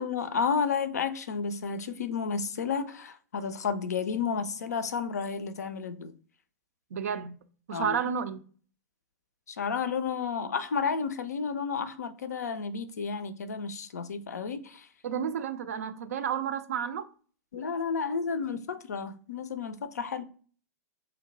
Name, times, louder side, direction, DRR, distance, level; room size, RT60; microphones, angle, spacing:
voice 1, 0.0-6.1 7.7-8.0 9.5-14.9 17.5-20.2, left 5 dB, 70° left, 0.4 m, -31 dB
voice 2, 6.9-7.4 7.7-8.4 15.0-17.1, right 7 dB, 60° right, 0.4 m, -31 dB
2.7 x 2.1 x 3.8 m
figure-of-eight pair, 100°, 9 cm